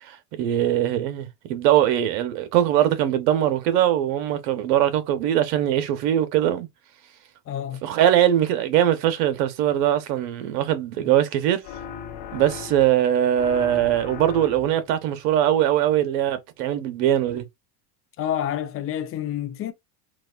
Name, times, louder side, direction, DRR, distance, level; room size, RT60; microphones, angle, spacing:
voice 1, 0.1-6.7 7.8-11.6 12.3-17.4, right 11 dB, 90° right, 0.8 m, -21 dB
voice 2, 7.5-7.8 18.2-19.7, left 10 dB, 30° left, 0.5 m, -28 dB
sound 1, 11.6-13.0 13.3-14.9, left 8 dB, 55° left, 0.9 m, -37 dB
4.0 x 2.4 x 2.3 m
supercardioid pair, 125°, 47 cm